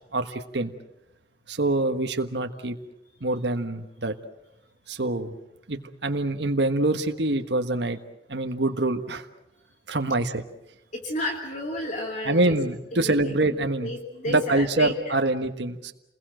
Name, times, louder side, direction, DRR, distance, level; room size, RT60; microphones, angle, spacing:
voice 1, 0.1-0.7 1.5-2.8 3.2-4.1 4.9-5.4 5.7-8.0 8.3-9.3 9.9-10.4 12.3-13.9 14.3-15.9, right 2 dB, 70° right, 6 dB, 1.4 m, -25 dB
voice 2, 10.9-12.5 12.9-13.3 13.8-15.1, left 1 dB, 45° left, 2 dB, 2.6 m, -32 dB
29.0 x 21.5 x 7.7 m, 0.89 s
head